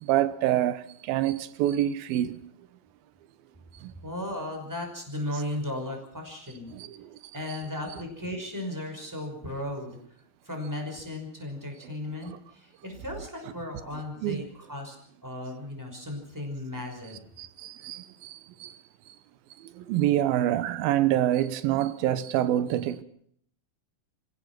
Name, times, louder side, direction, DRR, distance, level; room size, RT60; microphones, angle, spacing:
voice 1, 0.0-2.4 3.8-3.9 6.7-7.2 14.2-14.4 17.4-18.7 19.6-23.0, right 12 dB, 90° right, 2.8 m, -26 dB
voice 2, 4.0-6.7 7.3-10.0 10.4-15.0 15.2-17.2, left 1 dB, 5° right, 5.4 m, -36 dB
27.0 x 16.0 x 6.1 m
omnidirectional pair, 4.1 m